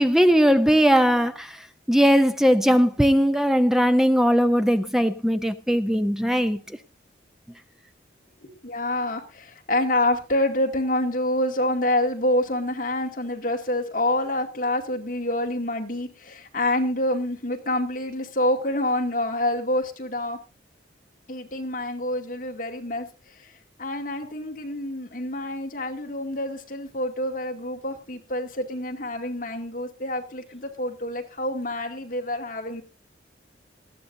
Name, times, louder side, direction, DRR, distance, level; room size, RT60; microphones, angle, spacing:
voice 1, 0.0-1.6 1.9-6.6, equal, ahead, 0.6 m, -19 dB
voice 2, 8.4-20.4 21.3-23.1 23.8-32.8, left 1 dB, 45° left, 2.3 m, -27 dB
19.0 x 13.5 x 2.6 m
head